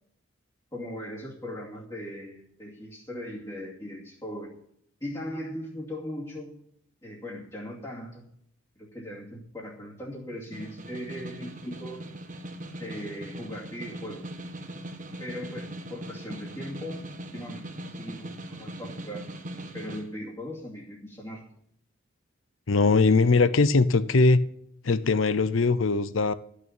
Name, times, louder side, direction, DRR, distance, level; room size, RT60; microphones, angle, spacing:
voice 1, 0.7-4.5 5.0-6.5 7.0-8.3 8.8-12.0 12.8-14.3 15.2-17.1 17.3-17.6 17.9-19.3 19.7-21.4, equal, 20° left, 2.5 m, -39 dB
Snare drum, 10.3-20.1, right 1 dB, 40° right, 1.7 m, -40 dB
voice 2, 22.7-24.4 24.8-26.3, left 3 dB, 75° left, 0.7 m, -21 dB
13.5 x 6.8 x 8.4 m
head